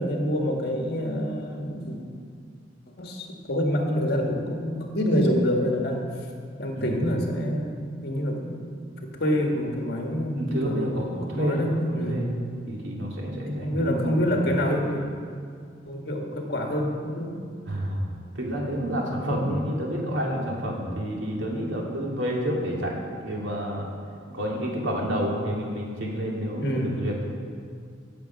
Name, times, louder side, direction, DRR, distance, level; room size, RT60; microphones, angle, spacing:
voice 1, 0.0-2.0 3.0-6.1 6.6-8.6 9.0-12.3 13.5-15.1 15.8-17.3 26.6-27.0, equal, 55° left, 1 dB, 1.7 m, -27 dB
voice 2, 6.7-7.1 10.3-12.2 12.7-14.4 17.7-18.0 18.3-23.0 23.2-23.9 24.3-27.3, equal, 85° right, -2 dB, 2.6 m, -29 dB
16.5 x 7.0 x 5.9 m, 2.2 s
head